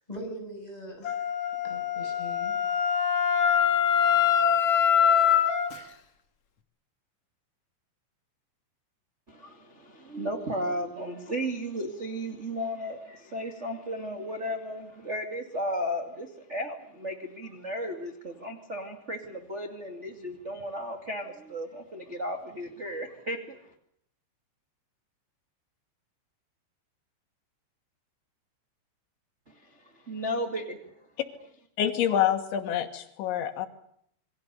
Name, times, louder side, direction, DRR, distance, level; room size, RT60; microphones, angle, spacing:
voice 1, 0.1-2.6, equal, 10° left, 7.7 m, -42 dB
Wind instrument woodwind instrument, 1.0-5.7, left 8 dB, 50° left, 2.0 m, -24 dB
voice 2, 9.3-23.7 29.5-30.8, equal, 30° right, 1.4 m, -35 dB
voice 3, 31.8-33.7, left 10 dB, 80° left, 3.7 m, -27 dB
28.0 x 23.5 x 6.9 m
omnidirectional pair, 5.3 m